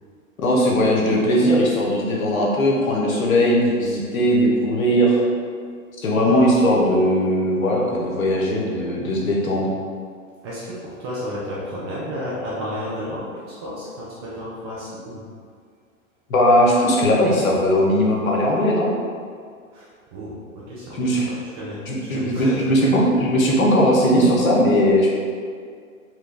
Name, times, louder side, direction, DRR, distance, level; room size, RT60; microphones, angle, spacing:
voice 1, 0.4-5.2 6.0-9.7 16.3-18.9 20.9-21.3 21.9-25.1, equal, 75° left, -3 dB, 1.1 m, -19 dB
voice 2, 10.4-15.2 19.7-21.8 22.1-22.9, equal, 20° right, -7 dB, 0.3 m, -32 dB
4.5 x 2.2 x 3.2 m, 2.1 s
hypercardioid pair, 120°, 41 cm